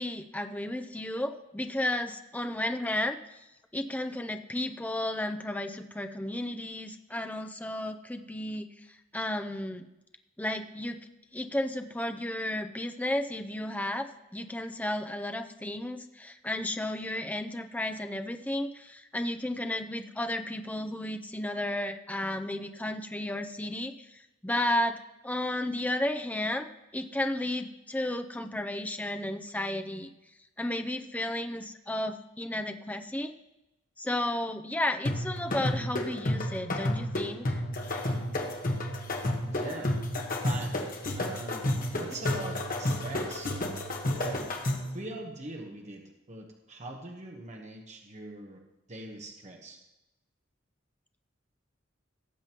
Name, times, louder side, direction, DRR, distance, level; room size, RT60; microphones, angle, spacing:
voice 1, 0.0-3.4 3.7-9.9 10.4-11.0 11.3-14.1 14.3-30.1 30.6-33.3 34.0-37.6, left 1 dB, 10° left, 6 dB, 0.5 m, -33 dB
sound 1, 35.0-45.0, left 1 dB, 45° left, 1.4 m, -31 dB
voice 2, 39.4-40.0 40.4-40.8 41.1-41.6 41.9-43.5 44.1-44.5 44.9-48.6 48.9-49.8, right 2 dB, 40° right, 1 dB, 1.2 m, -42 dB
18.0 x 7.4 x 3.0 m, 0.95 s
head